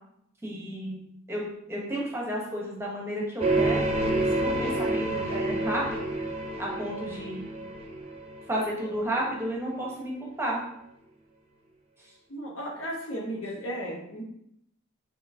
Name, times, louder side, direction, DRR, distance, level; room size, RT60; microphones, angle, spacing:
voice 1, 0.4-1.0 1.3-3.9 4.1-6.0 6.6-7.5 8.5-10.1 10.4-10.6, right 1 dB, 10° right, -3 dB, 1.0 m, -32 dB
sound 1, 3.4-9.0, right 2 dB, 30° right, 0.6 m, -28 dB
voice 2, 12.3-14.2, equal, 70° left, -2 dB, 1.3 m, -35 dB
6.5 x 2.8 x 2.7 m, 0.74 s
head